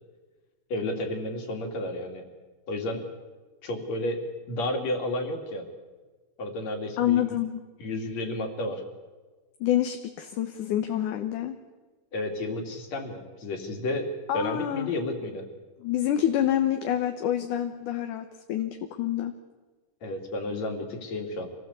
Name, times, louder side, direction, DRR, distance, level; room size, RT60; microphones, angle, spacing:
voice 1, 0.7-2.2 2.7-3.1 3.6-4.2 4.5-5.7 6.4-7.4 7.8-8.8 12.1-15.5 20.0-21.5, left 1 dB, 55° left, 4 dB, 4.0 m, -32 dB
voice 2, 7.0-7.6 9.6-11.6 14.3-14.9 15.8-19.3, left 11 dB, 70° left, 6 dB, 2.5 m, -27 dB
26.5 x 18.5 x 8.3 m, 1.3 s
omnidirectional pair, 3.9 m